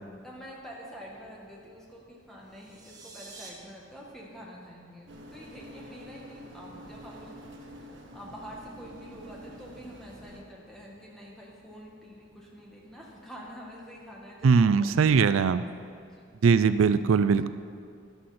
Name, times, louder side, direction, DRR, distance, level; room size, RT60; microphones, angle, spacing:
voice 1, 0.2-15.6 16.1-16.3, equal, ahead, -4 dB, 1.9 m, -47 dB
sound 1, 2.4-3.5, right 3 dB, 20° right, 1.2 m, -48 dB
sound 2, 5.1-10.4, right 1 dB, 65° right, 1.3 m, -47 dB
voice 2, 14.4-15.6 16.4-17.5, right 5 dB, 85° right, 13 dB, 0.4 m, -21 dB
12.5 x 11.0 x 4.3 m, 2.3 s
head